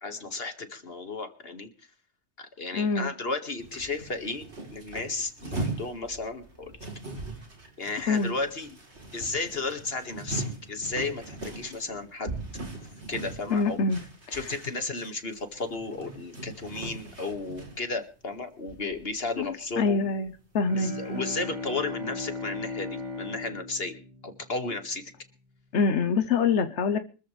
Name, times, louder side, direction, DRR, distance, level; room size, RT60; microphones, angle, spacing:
voice 1, 0.0-1.7 2.4-4.4 4.7-6.7 7.8-8.7 9.1-12.3 13.1-13.8 14.3-20.1 20.7-25.0, left 3 dB, 60° left, 7 dB, 2.2 m, -34 dB
voice 2, 2.7-3.1 8.1-8.3 13.5-14.0 14.3-14.4 19.4-20.9 25.7-27.0, left 4 dB, 85° left, 9 dB, 1.2 m, -25 dB
sound 1, 3.6-17.8 18.4-18.5 18.7-19.9 20.2-20.4, right 2 dB, 80° right, 3.9 m, -40 dB
Bowed string instrument, 20.6-24.9, left 2 dB, 40° right, 4.2 m, -37 dB
25.0 x 14.0 x 3.4 m, 0.37 s
omnidirectional pair, 1.2 m